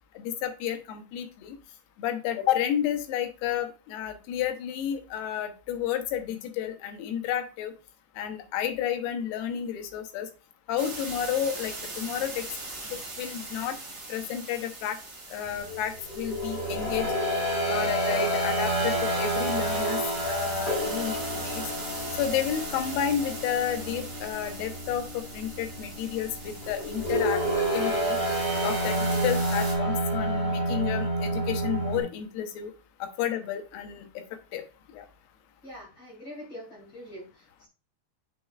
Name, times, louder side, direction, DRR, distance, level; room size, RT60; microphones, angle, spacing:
voice 1, 0.2-1.6 2.0-7.7 8.2-10.3 10.7-12.4 13.2-13.8 14.1-15.0 15.3-17.1 17.7-21.6 22.2-27.4 27.7-28.2 28.6-32.7 33.0-34.2 34.5-34.6 34.9-35.1, left 10 dB, 75° left, 6 dB, 2.7 m, -31 dB
sound 1, 10.8-29.7, right 2 dB, 30° right, 1.6 m, -40 dB
sound 2, 15.6-32.0, right 1 dB, 10° left, 2.9 m, -29 dB
voice 2, 35.6-37.7, equal, 30° left, -3 dB, 2.0 m, -44 dB
7.5 x 6.4 x 2.4 m, 0.32 s
omnidirectional pair, 4.9 m